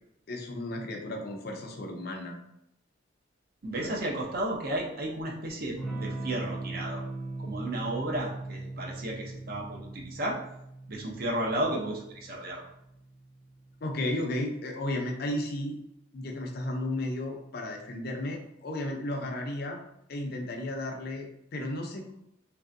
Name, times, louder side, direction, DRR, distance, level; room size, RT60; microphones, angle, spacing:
voice 1, 0.3-2.4 3.8-4.0 13.8-15.8 16.1-19.8 20.1-22.1, left 1 dB, 50° left, 2 dB, 0.5 m, -34 dB
voice 2, 3.6-7.0 7.4-10.4 10.9-12.6, right 1 dB, 50° right, -1 dB, 0.6 m, -33 dB
Electric guitar / Strum, 5.8-14.1, right 2 dB, ahead, 0.6 m, -40 dB
3.2 x 2.6 x 2.5 m, 0.79 s
head